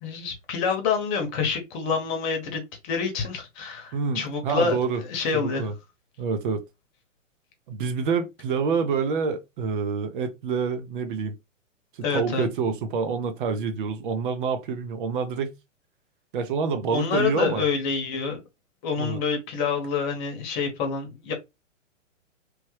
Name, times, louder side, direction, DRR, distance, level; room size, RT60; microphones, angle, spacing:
voice 1, 0.0-4.8 5.1-5.7 12.0-12.5 16.9-18.4 18.8-21.3, left 5 dB, 35° left, 1.0 m, -27 dB
voice 2, 3.9-5.0 5.3-5.7 6.2-6.6 7.7-11.3 11.9-15.6 16.3-17.7 19.0-19.2, right 5 dB, 40° right, 0.5 m, -27 dB
3.1 x 2.1 x 3.1 m
hypercardioid pair, 125°, 39 cm